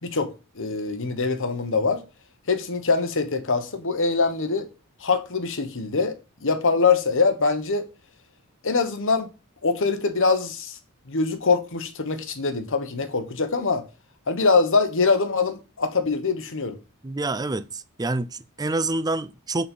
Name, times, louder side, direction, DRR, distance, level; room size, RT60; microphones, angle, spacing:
voice 1, 0.0-2.0 2.5-4.7 5.0-7.9 8.6-9.3 9.6-10.8 11.1-13.8 14.3-16.8, left 4 dB, 60° left, 1.2 m, -23 dB
voice 2, 17.0-19.7, right 2 dB, 15° right, 0.4 m, -27 dB
8.5 x 4.2 x 5.4 m
head